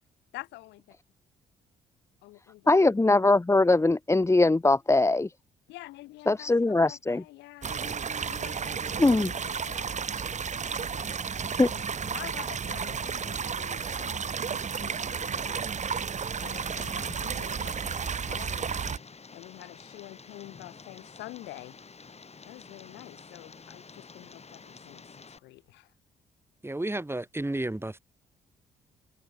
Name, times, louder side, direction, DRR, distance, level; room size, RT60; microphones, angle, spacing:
voice 1, 0.3-0.8 2.2-2.6 5.7-8.0 8.3-10.0 10.8-11.1 11.7-15.9 16.4-19.0 19.3-21.8 22.4-25.0 25.4-25.9, left 18 dB, 70° left, 6.2 m, -47 dB
voice 2, 2.7-5.3 6.3-7.2 9.0-9.3 11.6-11.7, left 2 dB, 15° left, 1.1 m, -21 dB
sound 1, 7.6-19.0, right 6 dB, 40° right, 1.9 m, -32 dB
Tick, 16.4-25.4, left 4 dB, 35° left, 6.1 m, -49 dB
voice 3, 26.6-28.0, right 1 dB, 15° right, 6.6 m, -32 dB
hypercardioid pair, 45°, 19 cm